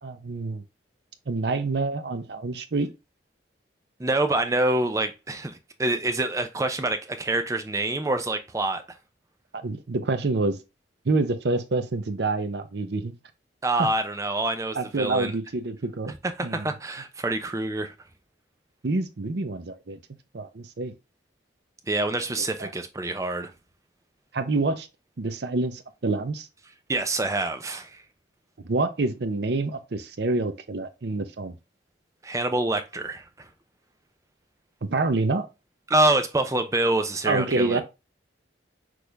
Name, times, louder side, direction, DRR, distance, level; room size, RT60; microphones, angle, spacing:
voice 1, 0.0-0.6 1.3-2.9 9.5-10.6 11.0-13.1 13.8-13.9 14.8-16.1 16.4-16.7 18.8-20.0 20.3-20.9 22.6-22.7 24.3-24.9 25.2-26.5 28.6-31.5 34.8-35.5 37.3-37.8, right 3 dB, 60° right, 0.6 m, -27 dB
voice 2, 4.0-8.8 13.6-15.3 16.4-17.9 21.9-23.5 26.9-28.0 32.2-33.5 35.9-37.8, right 2 dB, 15° right, 0.4 m, -26 dB
6.1 x 2.5 x 3.3 m
head